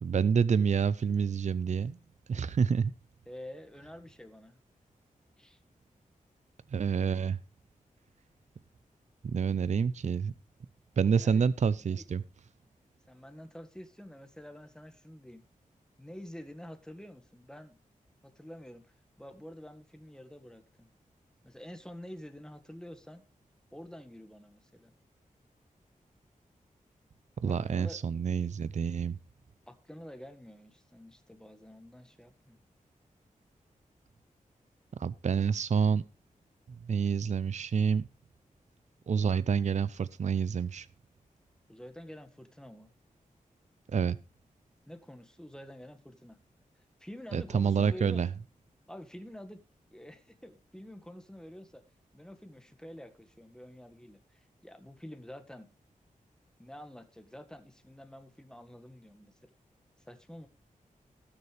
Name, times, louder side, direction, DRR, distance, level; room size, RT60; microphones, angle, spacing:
voice 1, 0.0-2.0 2.3-2.9 6.7-7.4 9.2-10.3 11.0-12.2 27.4-29.2 35.0-36.0 36.8-38.1 39.1-40.9 43.9-44.2 47.3-48.3, right 6 dB, 55° right, 0.5 m, -28 dB
voice 2, 3.3-4.6 5.4-5.6 11.1-11.5 11.8-12.0 13.1-15.4 16.0-17.8 18.2-20.9 21.4-23.2 23.7-25.0 27.5-28.0 29.7-32.6 41.7-42.9 44.9-46.4 47.0-48.2 48.9-49.6 49.9-51.8 52.1-55.7 56.6-59.3 60.1-60.5, equal, 5° left, 1.7 m, -48 dB
19.5 x 6.8 x 3.3 m
wide cardioid pair, 95°, 14 cm